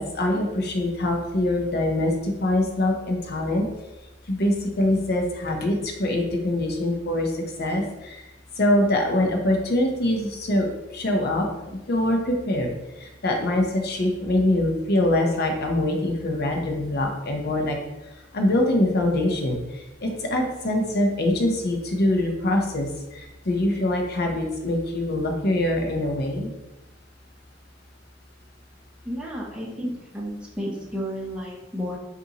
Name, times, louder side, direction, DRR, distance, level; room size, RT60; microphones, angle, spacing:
voice 1, 0.0-3.7 4.3-7.3 7.6-8.2 8.6-10.7 10.9-12.7 13.0-17.8 18.3-26.5, left 1 dB, 60° left, 2 dB, 0.7 m, -24 dB
voice 2, 29.0-32.0, equal, 5° right, -4 dB, 0.8 m, -32 dB
5.3 x 2.6 x 2.9 m, 1.0 s
head